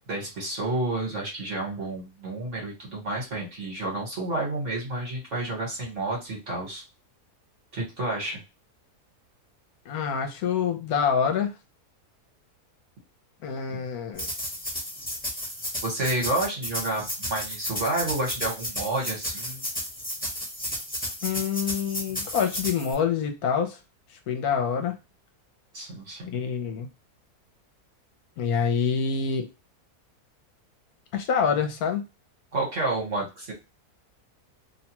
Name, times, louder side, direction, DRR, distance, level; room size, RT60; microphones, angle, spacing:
voice 1, 0.1-6.8 7.7-8.4 13.7-13.8 15.8-19.6 25.7-26.4 32.5-33.5, right 2 dB, 55° right, -2 dB, 1.5 m, -30 dB
voice 2, 9.9-11.5 13.4-14.3 21.2-23.8 24.3-25.0 26.2-26.9 28.4-29.5 31.1-32.0, left 7 dB, 75° left, 5 dB, 1.1 m, -26 dB
sound 1, 14.1-22.9, equal, 5° left, 0.9 m, -33 dB
2.8 x 2.2 x 2.9 m, 0.25 s
omnidirectional pair, 1.7 m